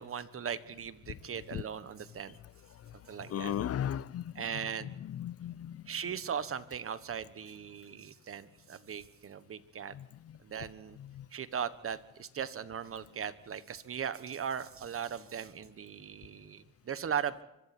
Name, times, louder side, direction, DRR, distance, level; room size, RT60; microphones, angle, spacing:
voice 1, 0.0-2.3 3.1-3.5 4.3-4.9 5.9-9.9 10.4-11.0 11.3-17.4, right 8 dB, 45° right, 1.3 m, -38 dB
voice 2, 3.3-5.8 9.9-10.4 11.0-11.3, left 10 dB, 50° left, 0.6 m, -37 dB
24.5 x 24.0 x 4.4 m
cardioid pair, 90°, 30 cm